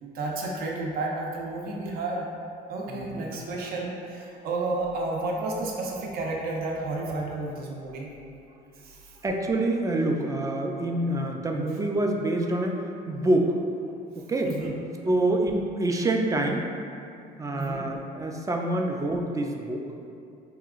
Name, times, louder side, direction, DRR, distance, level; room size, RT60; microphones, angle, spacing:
voice 1, 0.0-2.2 2.7-8.1 8.8-9.2 14.4-14.7 17.5-17.8, right 2 dB, 65° right, -2 dB, 0.6 m, -31 dB
voice 2, 2.9-3.4 9.2-12.8 13.1-13.6 14.2-14.5 15.0-16.7 17.4-19.9, right 1 dB, 20° right, 2 dB, 0.3 m, -26 dB
4.8 x 2.8 x 2.4 m, 2.5 s
cardioid pair, 110°, 17 cm